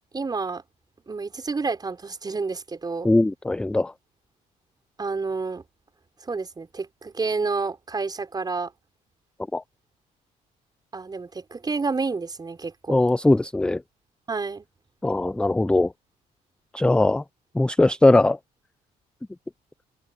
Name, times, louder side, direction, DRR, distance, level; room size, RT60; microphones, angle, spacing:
voice 1, 0.1-0.6 1.1-3.1 5.0-5.6 6.2-8.7 10.9-13.0 14.3-14.7, right 4 dB, 25° right, 5.5 m, -29 dB
voice 2, 3.0-3.9 9.5-9.6 12.9-13.8 15.0-15.9 16.7-17.2 17.5-18.4, left 2 dB, 5° left, 0.4 m, -20 dB
cardioid pair, 110°, 17 cm